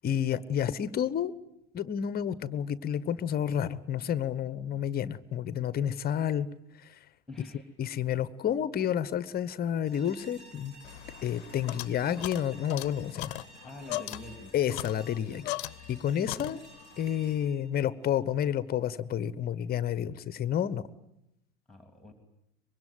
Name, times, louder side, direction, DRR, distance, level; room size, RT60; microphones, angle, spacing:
voice 1, 0.0-1.3 1.7-6.5 6.8-7.0 7.8-10.7 11.2-13.4 14.5-15.6 15.9-16.6 17.0-20.8, left 9 dB, 25° left, 18 dB, 1.1 m, -30 dB
voice 2, 7.3-7.7 13.6-14.5 21.7-22.1, left 2 dB, ahead, 6 dB, 2.9 m, -46 dB
sound 1, 9.8-18.9, right 1 dB, 85° right, 6.6 m, -54 dB
sound 2, 10.8-16.0 16.3-16.9, left 17 dB, 50° left, 0.9 m, -39 dB
24.5 x 22.0 x 9.5 m, 0.84 s
figure-of-eight pair, 80°, 35 cm